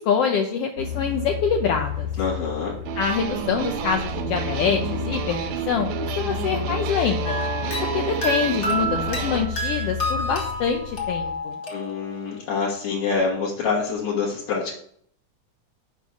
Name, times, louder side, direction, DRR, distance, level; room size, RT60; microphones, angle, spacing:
voice 1, 0.0-2.1 3.0-7.4 7.9-11.5, left 6 dB, 85° left, 3 dB, 1.3 m, -25 dB
sound 1, 0.8-11.3, left 7 dB, 55° right, 1.2 m, -32 dB
voice 2, 2.2-2.8 11.7-14.7, left 5 dB, 70° left, -5 dB, 2.7 m, -26 dB
sound 2, 2.9-9.5, right 9 dB, 75° right, 1.8 m, -30 dB
sound 3, 7.2-12.4, right 1 dB, 35° left, 1.1 m, -29 dB
6.6 x 5.4 x 6.1 m, 0.62 s
omnidirectional pair, 3.5 m